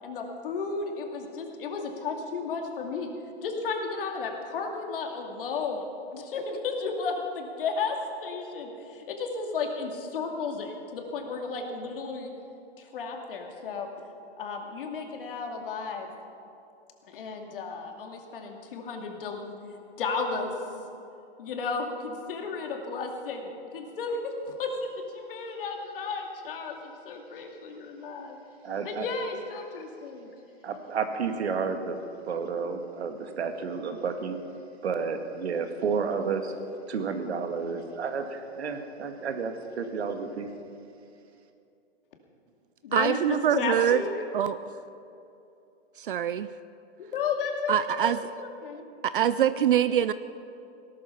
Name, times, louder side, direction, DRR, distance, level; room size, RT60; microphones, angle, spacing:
voice 1, 0.0-3.1 3.4-5.8 6.1-12.3 12.8-13.9 14.4-16.1 17.1-19.5 20.0-20.6 21.4-28.4 28.8-30.3 42.8-44.2 47.0-48.2 48.4-48.8, left 4 dB, 55° left, 2 dB, 2.5 m, -33 dB
voice 2, 28.6-29.1 30.6-32.0 32.3-34.4 34.8-36.5 36.9-40.5, right 5 dB, 70° right, 6 dB, 1.9 m, -31 dB
voice 3, 42.9-44.0 44.3-44.6 46.0-46.5 47.7-48.2 49.0-50.1, right 10 dB, 50° right, 14 dB, 0.5 m, -24 dB
18.0 x 12.5 x 5.8 m, 2.7 s
hypercardioid pair, 155°, 34 cm